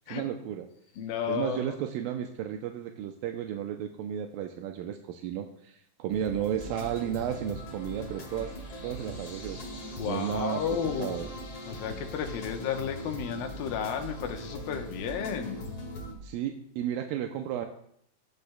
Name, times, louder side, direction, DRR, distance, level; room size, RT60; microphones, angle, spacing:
voice 1, 0.1-0.7 1.3-8.5 8.8-9.6 10.1-11.3 16.2-17.7, right 9 dB, 85° right, 4 dB, 2.3 m, -33 dB
voice 2, 1.0-1.7 10.0-11.2 11.7-15.6, left 8 dB, 80° left, 4 dB, 2.7 m, -33 dB
sound 1, 6.1-16.1, equal, 45° left, 2.3 m, -40 dB
22.5 x 8.1 x 2.3 m, 0.72 s
omnidirectional pair, 4.1 m